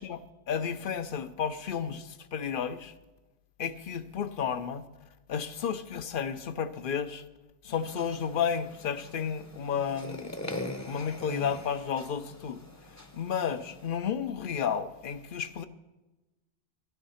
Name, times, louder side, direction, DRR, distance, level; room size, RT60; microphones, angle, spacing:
voice 1, 0.0-2.9 3.6-4.8 5.3-7.2 7.6-10.4 10.9-12.7 13.1-15.7, left 7 dB, 55° left, 0.9 m, -32 dB
sound 1, 7.7-13.9, left 1 dB, 15° left, 0.8 m, -42 dB
13.5 x 12.0 x 5.7 m
omnidirectional pair, 1.1 m